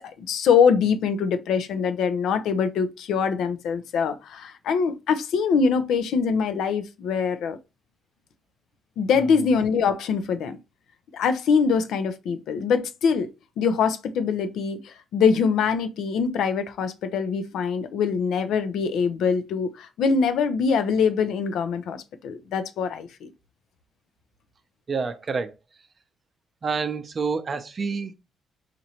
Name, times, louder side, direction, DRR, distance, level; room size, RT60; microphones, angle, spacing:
voice 1, 0.2-7.6 9.0-10.6 11.1-13.3 13.6-23.3, left 6 dB, 80° left, 0.5 m, -23 dB
voice 2, 24.9-25.5 26.6-28.1, right 5 dB, 35° right, 0.5 m, -28 dB
4.1 x 2.6 x 2.8 m
cardioid pair, 90°, 0 cm